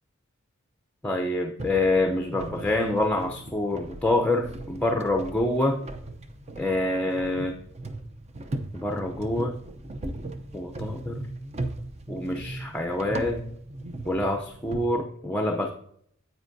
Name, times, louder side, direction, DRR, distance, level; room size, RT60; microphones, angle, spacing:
voice 1, 1.0-5.8 6.6-7.5 8.7-9.5 10.5-11.2 12.1-13.4 14.1-15.7, left 1 dB, 10° left, 3 dB, 0.6 m, -26 dB
sound 1, 1.6-14.8, right 2 dB, 30° right, 0.7 m, -38 dB
9.7 x 8.1 x 2.7 m, 0.66 s
head